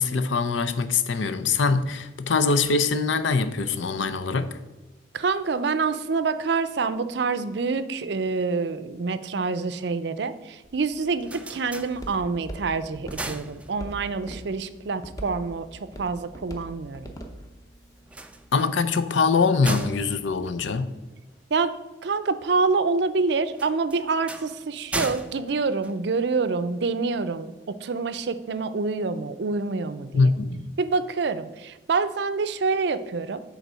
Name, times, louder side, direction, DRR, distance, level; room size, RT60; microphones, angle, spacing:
voice 1, 0.0-4.6 18.5-20.9 30.1-30.7, left 4 dB, 85° left, 0.6 m, -23 dB
voice 2, 5.1-17.1 21.5-21.7 22.0-30.3 30.8-33.4, right 4 dB, 65° right, 0.5 m, -27 dB
Walk footsteps, 10.6-18.6, equal, 20° left, 0.8 m, -43 dB
sound 1, 11.0-12.5 12.9-14.2 18.0-21.4 23.5-26.6, right 2 dB, 5° right, 0.3 m, -37 dB
8.1 x 4.0 x 6.2 m
head